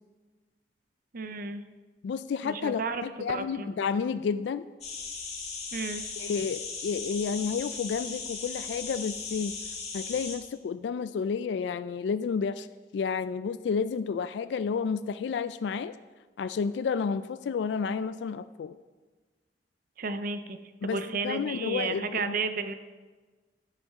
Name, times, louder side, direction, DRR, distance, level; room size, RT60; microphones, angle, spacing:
voice 1, 1.1-1.6 2.4-3.7 5.7-6.0 20.0-20.6 20.8-22.7, right 4 dB, 55° right, 10 dB, 0.6 m, -33 dB
voice 2, 2.0-4.7 6.2-9.5 9.9-12.7 12.9-15.9 16.4-18.8 20.8-22.4, left 6 dB, 75° left, 13 dB, 0.3 m, -31 dB
sound 1, 4.8-10.4, left 4 dB, 40° left, 1.8 m, -37 dB
11.0 x 11.0 x 3.6 m, 1.3 s
head